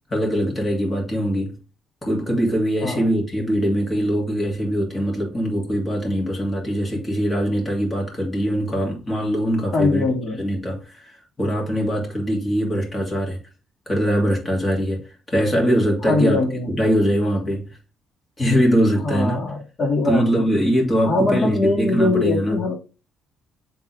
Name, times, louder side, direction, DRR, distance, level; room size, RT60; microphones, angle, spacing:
voice 1, 0.1-1.6 2.0-10.1 10.4-13.4 13.9-17.7 18.4-19.4 20.0-22.6, equal, 20° left, 2.5 m, -22 dB
voice 2, 9.7-10.4 16.1-16.7 19.0-20.5 21.1-22.7, left 3 dB, 45° left, 2.3 m, -22 dB
7.7 x 3.6 x 3.4 m
cardioid pair, 120°, 0 cm